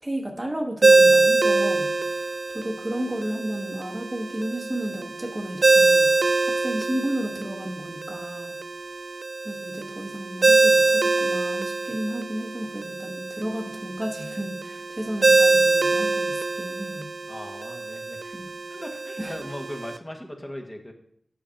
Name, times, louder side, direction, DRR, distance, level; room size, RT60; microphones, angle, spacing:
voice 1, 0.0-8.6 9.4-17.1 18.3-18.5 19.2-19.4, right 1 dB, 20° right, 3 dB, 1.1 m, -33 dB
Ringtone, 0.8-20.0, right 3 dB, 65° right, 0.3 m, -23 dB
voice 2, 17.3-18.4 18.7-20.9, equal, 20° left, 2 dB, 1.4 m, -38 dB
8.3 x 5.7 x 5.1 m, 0.67 s
wide cardioid pair, 65°, 0 cm